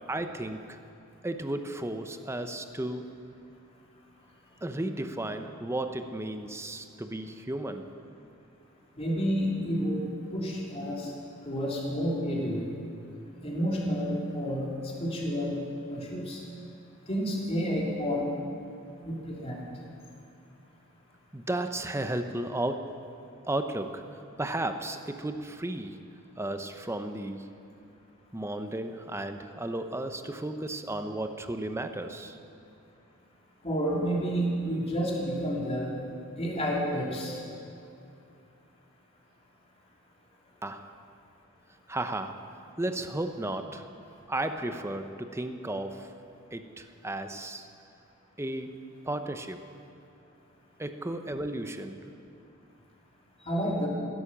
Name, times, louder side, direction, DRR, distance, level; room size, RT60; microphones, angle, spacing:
voice 1, 0.1-0.8 1.2-3.2 4.6-7.9 21.3-23.0 23.5-24.0 24.4-26.0 26.4-27.6 28.3-32.4 40.6-40.9 41.9-42.4 42.8-43.9 44.3-46.1 46.5-47.7 48.4-49.6 50.8-52.0, right 1 dB, 15° right, 8 dB, 0.7 m, -34 dB
voice 2, 9.0-10.1 10.3-11.1 11.4-12.6 13.4-15.6 15.9-16.4 17.1-18.3 19.0-19.6 33.6-35.9 36.4-37.4 53.4-53.9, equal, 30° left, -3 dB, 3.0 m, -30 dB
16.0 x 11.5 x 7.3 m, 2.5 s
head